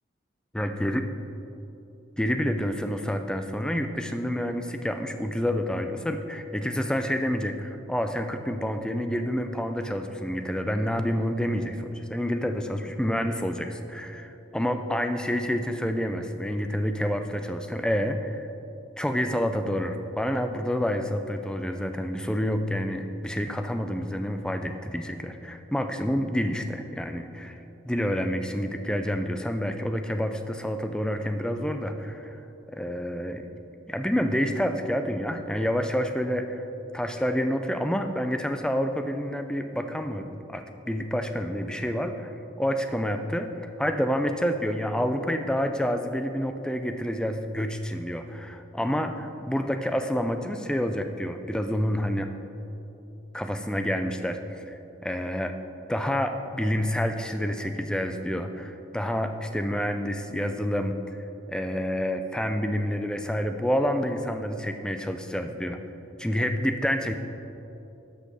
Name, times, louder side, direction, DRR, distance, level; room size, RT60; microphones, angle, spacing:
voice 1, 0.5-1.0 2.2-18.5 19.0-27.6 27.8-32.4 32.7-33.5 33.9-36.6 36.9-43.5 43.8-52.3 53.3-55.5 55.9-61.2 61.5-65.8 66.2-67.2, equal, 5° left, 7 dB, 0.3 m, -28 dB
12.0 x 5.7 x 4.1 m, 3.0 s
head